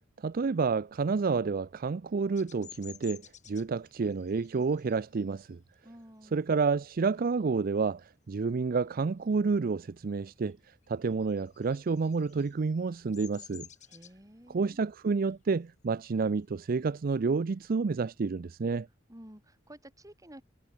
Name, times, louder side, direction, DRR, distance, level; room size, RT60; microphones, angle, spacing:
voice 1, 0.2-3.2 3.5-5.6 6.3-10.6 10.9-13.7 14.5-18.9, right 4 dB, 50° right, 0.5 m, -29 dB
Bird vocalization bird call bird song, 2.4-7.6 8.0-8.3 8.6-9.9 10.1-17.5, left 9 dB, 40° left, 5.2 m, -54 dB
voice 2, 5.8-6.4 13.9-14.8 19.1-20.4, equal, 20° right, 7.6 m, -51 dB
head